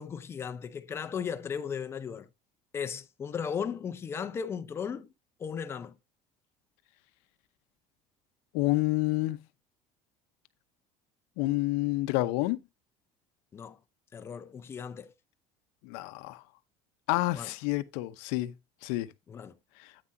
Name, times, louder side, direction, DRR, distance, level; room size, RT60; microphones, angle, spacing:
voice 1, 0.0-2.3 2.7-5.1 5.4-5.9 13.5-13.8 14.1-15.1 17.3-17.5 19.3-19.5, left 7 dB, 20° left, 0.6 m, -36 dB
voice 2, 8.5-9.4 11.4-12.6 15.8-16.4 17.1-18.5 18.8-19.1, left 18 dB, 75° left, 0.8 m, -28 dB
9.7 x 8.8 x 2.6 m
cardioid pair, 180°, 13 cm